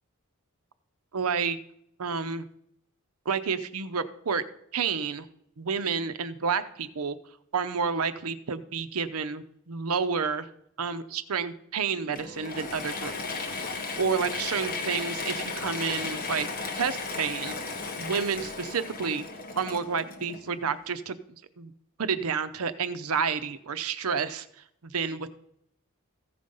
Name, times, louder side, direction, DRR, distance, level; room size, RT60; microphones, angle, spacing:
voice 1, 1.1-1.6 2.0-2.4 3.3-4.4 4.7-5.3 5.6-7.2 7.5-10.5 10.8-13.1 14.0-16.5 16.7-17.5 18.0-19.2 19.6-21.2 21.6-21.7 22.0-24.5 24.8-25.3, right 6 dB, 75° right, 12 dB, 0.7 m, -30 dB
Mechanisms / Drill, 12.1-20.7, left 3 dB, 40° left, 1.2 m, -35 dB
14.5 x 5.1 x 5.4 m, 0.74 s
head